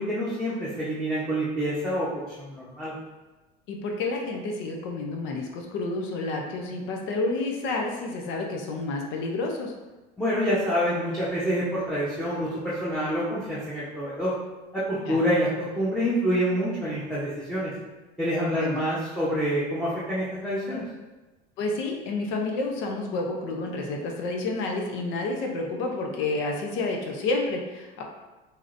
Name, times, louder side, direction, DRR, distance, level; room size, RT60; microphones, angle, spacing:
voice 1, 0.0-2.9 10.2-14.3 14.7-17.7 18.2-20.8, equal, ahead, -9 dB, 0.9 m, -27 dB
voice 2, 3.7-9.7 15.1-15.2 18.4-18.8 21.6-28.0, left 2 dB, 65° left, 1 dB, 0.7 m, -30 dB
4.7 x 2.8 x 2.6 m, 1.1 s
supercardioid pair, 110°, 21 cm